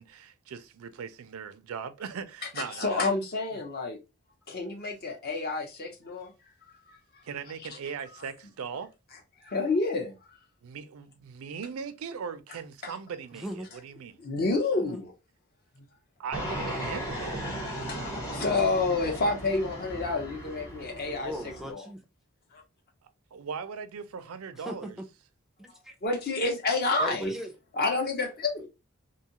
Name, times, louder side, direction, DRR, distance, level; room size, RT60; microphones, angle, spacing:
voice 1, 0.0-3.1 3.5-3.6 7.2-8.9 10.6-14.3 16.2-17.4 23.0-25.0, right 6 dB, 85° right, 0.4 m, -39 dB
voice 2, 2.7-4.0 4.5-6.3 9.4-10.1 12.8-12.9 14.2-15.1 15.8-15.9 17.8-21.3 21.7-21.8 26.0-27.3 27.8-28.7, left 3 dB, 50° left, 0.7 m, -29 dB
voice 3, 13.3-13.7 21.2-22.0 24.6-25.0 25.6-25.9 27.0-27.5, equal, ahead, 0.4 m, -38 dB
Fixed-wing aircraft airplane, 16.3-21.7, equal, 15° left, 1.0 m, -36 dB
2.6 x 2.3 x 2.8 m
head